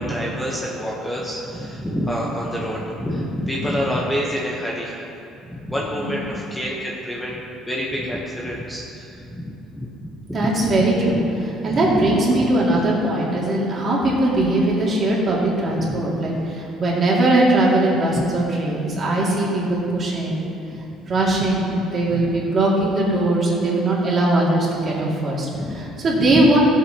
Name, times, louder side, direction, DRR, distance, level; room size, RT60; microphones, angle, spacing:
voice 1, 0.0-5.1 5.4-7.4 7.7-10.9 11.6-12.5 15.6-16.0 16.3-16.4 18.1-18.2 20.7-20.8 21.4-21.5 22.1-22.3 25.5-26.5, equal, 5° left, -4 dB, 0.9 m, -28 dB
voice 2, 5.9-6.2 10.3-20.5 21.1-25.5 25.7-26.6, right 1 dB, 35° right, -5 dB, 2.2 m, -20 dB
15.5 x 7.9 x 2.9 m, 2.7 s
cardioid pair, 150°, 0 cm